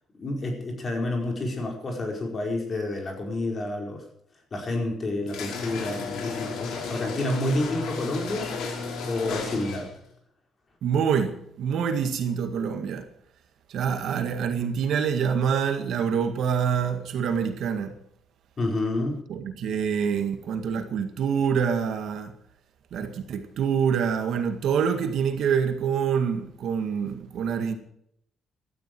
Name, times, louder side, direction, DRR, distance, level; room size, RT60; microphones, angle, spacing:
voice 1, 0.2-4.0 4.5-8.5 9.0-9.9 18.6-19.2, left 2 dB, 30° left, 4.8 m, -29 dB
sound 1, 5.3-10.0, left 4 dB, 85° left, 5.0 m, -34 dB
voice 2, 10.8-13.1 13.7-17.9 19.3-22.3 22.9-27.8, right 7 dB, 65° right, 1.9 m, -26 dB
17.5 x 13.0 x 4.7 m
cardioid pair, 165°, 0 cm